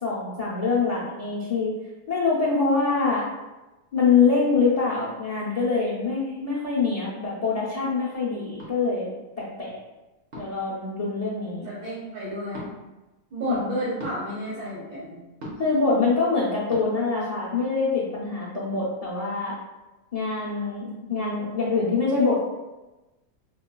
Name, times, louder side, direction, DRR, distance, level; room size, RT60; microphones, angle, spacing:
voice 1, 0.0-1.7 2.1-3.2 3.9-9.1 9.6-9.8 10.4-11.7 13.5-13.7 15.6-19.5 20.1-22.4, left 4 dB, 65° left, -7 dB, 0.3 m, -24 dB
sound 1, 8.6-8.8 10.3-10.7 12.5-12.7 14.0-14.2 15.4-15.7 16.7-16.8, equal, 55° right, 1.1 m, -38 dB
voice 2, 11.6-12.7 13.3-15.2, right 1 dB, 75° right, -9 dB, 1.7 m, -31 dB
5.1 x 2.2 x 2.2 m, 1.1 s
omnidirectional pair, 1.5 m